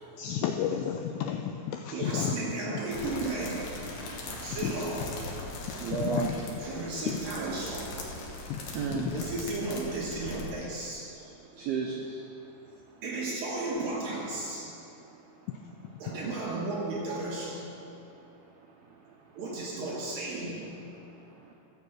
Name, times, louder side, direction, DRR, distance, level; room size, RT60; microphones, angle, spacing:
voice 1, 0.2-2.3 2.7-2.8 4.5-4.7 5.9-6.4 8.5-8.6 8.9-9.2, left 9 dB, 85° left, 4 dB, 2.5 m, -32 dB
voice 2, 1.9-3.7 4.4-5.2 6.6-8.0 9.1-11.1 13.0-14.8 16.0-17.8 19.3-20.9, right 2 dB, 65° right, -3 dB, 2.3 m, -34 dB
sound 1, 2.9-10.5, left 2 dB, 60° left, 2.6 m, -40 dB
voice 3, 5.8-6.4 8.7-9.1 11.2-11.3 11.5-12.2 12.9-13.0 18.5-18.6 18.9-19.2 21.0-21.5, right 6 dB, 90° right, -1 dB, 2.1 m, -34 dB
14.5 x 7.2 x 7.6 m, 2.8 s
omnidirectional pair, 5.7 m